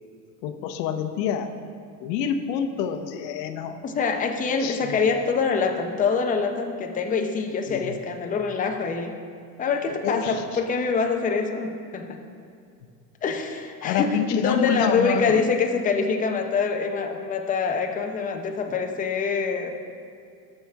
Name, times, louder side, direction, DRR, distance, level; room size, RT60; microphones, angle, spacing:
voice 1, 0.4-1.5 2.0-3.8 4.6-5.0 7.7-8.0 10.0-10.4 13.8-15.4, left 7 dB, 90° left, 8 dB, 0.8 m, -27 dB
voice 2, 3.8-9.2 9.6-12.2 13.2-19.7, left 5 dB, 15° left, 4 dB, 0.6 m, -25 dB
13.0 x 6.7 x 3.5 m, 2.4 s
supercardioid pair, 125°, 48 cm